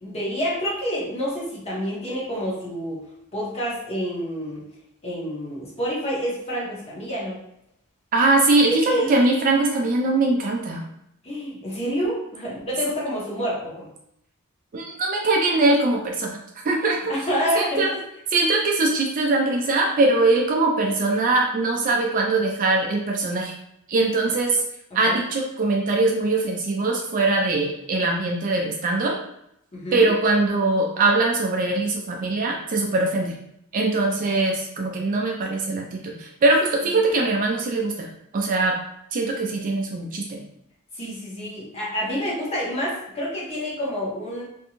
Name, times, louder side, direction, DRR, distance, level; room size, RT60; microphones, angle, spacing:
voice 1, 0.0-3.0 3.3-4.6 5.0-7.4 8.7-9.1 11.2-13.9 17.1-17.8 25.0-25.2 29.7-30.1 40.9-44.4, equal, 30° left, -6 dB, 0.9 m, -28 dB
voice 2, 8.1-10.9 14.7-16.4 16.7-17.0 17.6-17.9 18.3-23.5 23.9-24.6 24.9-29.2 29.9-33.3 33.7-38.1 38.3-38.7 39.1-40.4, right 2 dB, 40° right, 0 dB, 0.3 m, -22 dB
2.5 x 2.2 x 2.9 m, 0.76 s
head